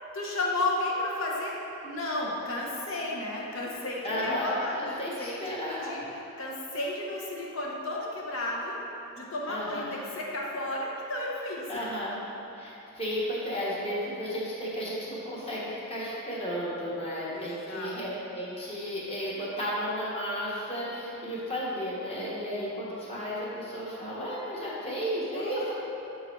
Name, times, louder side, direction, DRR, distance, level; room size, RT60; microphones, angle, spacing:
voice 1, 0.1-1.5 1.8-6.0 6.4-8.7 9.2-11.9 17.3-18.3 25.3-25.7, left 2 dB, 60° left, -3 dB, 1.0 m, -33 dB
voice 2, 4.0-6.0 9.5-10.0 11.7-12.2 12.6-25.7, equal, 25° left, -7 dB, 1.2 m, -33 dB
7.0 x 3.8 x 4.5 m, 2.9 s
head